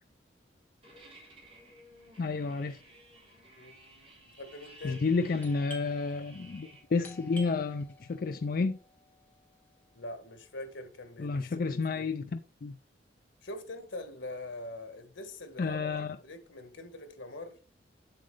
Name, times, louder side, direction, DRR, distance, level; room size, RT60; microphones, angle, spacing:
sound 1, 0.8-6.8, right 1 dB, 30° right, 3.7 m, -55 dB
voice 1, 2.2-2.8 4.8-8.8 11.2-12.8 15.6-16.2, left 4 dB, 50° left, 0.4 m, -31 dB
voice 2, 4.3-5.0 9.9-12.1 13.4-17.6, left 2 dB, 90° left, 1.6 m, -43 dB
Doorbell, 5.4-10.8, equal, 10° left, 1.1 m, -53 dB
7.7 x 7.5 x 3.3 m
head